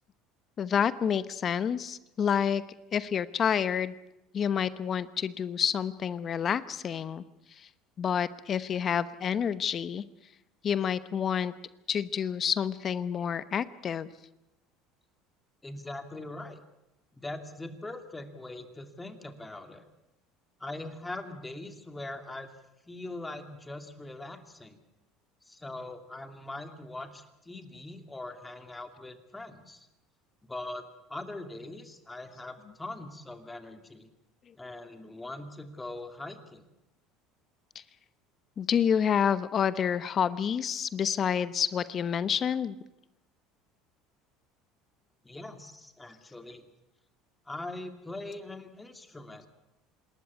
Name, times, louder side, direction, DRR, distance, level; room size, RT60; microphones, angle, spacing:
voice 1, 0.6-2.6 2.9-3.9 4.3-7.2 7.6-7.7 8.0-10.0 10.6-11.5 11.9-14.1 38.6-42.8, left 8 dB, 40° left, 15 dB, 1.0 m, -28 dB
voice 2, 15.6-16.6 17.1-19.9 20.6-22.5 22.9-24.8 25.4-29.9 30.4-34.1 34.6-36.6 45.2-46.7 47.5-49.4, left 2 dB, 10° left, 7 dB, 2.6 m, -41 dB
26.5 x 13.0 x 9.6 m, 0.90 s
supercardioid pair, 100°, 0 cm